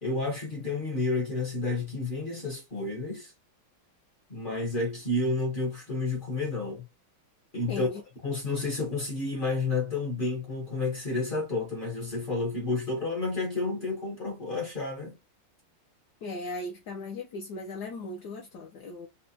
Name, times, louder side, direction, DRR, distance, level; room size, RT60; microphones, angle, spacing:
voice 1, 0.0-3.3 4.3-6.8 7.5-7.9 8.2-15.1, left 3 dB, 50° left, 0.6 m, -30 dB
voice 2, 7.7-8.0 16.2-19.1, left 2 dB, 75° left, 1.0 m, -37 dB
4.2 x 2.1 x 2.7 m
omnidirectional pair, 2.3 m